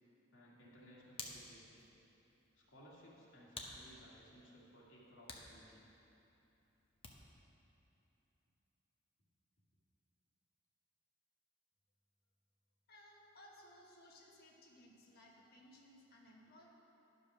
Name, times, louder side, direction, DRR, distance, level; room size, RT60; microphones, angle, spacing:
voice 1, 0.3-1.8 2.6-5.8, equal, 75° left, -5 dB, 2.1 m, -60 dB
Hands, 0.6-7.4, left 3 dB, 30° left, 0.8 m, -55 dB
voice 2, 12.9-16.7, left 1 dB, 50° left, -2 dB, 1.4 m, -61 dB
11.0 x 5.2 x 6.0 m, 3.0 s
head